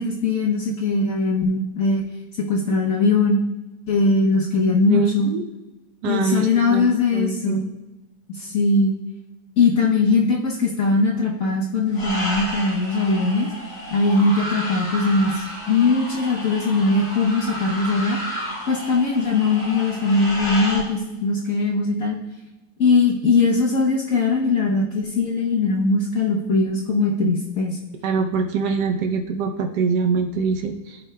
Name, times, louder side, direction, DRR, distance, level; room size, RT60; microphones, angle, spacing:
voice 1, 0.0-2.0 2.5-3.4 3.9-5.3 6.0-7.6 8.3-8.9 9.6-13.5 13.9-18.2 18.7-22.2 22.8-27.8, left 3 dB, 60° left, -2 dB, 1.2 m, -20 dB
voice 2, 4.9-5.4 6.0-7.7 28.0-31.0, right 5 dB, 85° right, 4 dB, 1.3 m, -24 dB
sound 1, 11.9-20.8, equal, 40° left, 2.1 m, -32 dB
14.5 x 5.0 x 2.2 m, 1.1 s
omnidirectional pair, 1.7 m